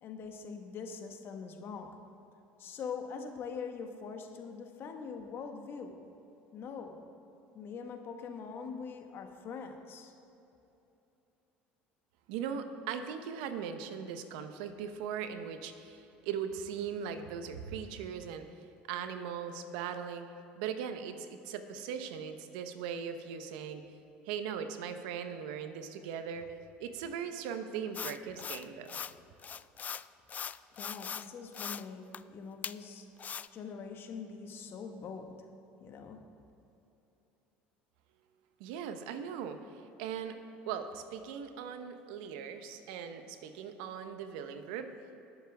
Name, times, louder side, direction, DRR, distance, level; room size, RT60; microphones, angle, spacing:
voice 1, 0.0-1.9 2.6-6.0 6.5-7.0 7.5-10.1 30.8-33.1 33.5-35.3 35.8-36.2, left 5 dB, 50° left, 4 dB, 1.4 m, -43 dB
voice 2, 12.3-18.5 18.9-20.3 20.6-23.9 24.2-29.0 38.6-39.6 40.0-44.9, right 7 dB, 80° right, 8 dB, 0.9 m, -39 dB
sound 1, 27.9-29.1 29.4-31.3 31.5-31.8 32.1-32.2 32.6-32.7 33.2-33.5, left 7 dB, 35° left, 0.3 m, -40 dB
20.5 x 7.3 x 3.5 m, 3.0 s
supercardioid pair, 85°, 5 cm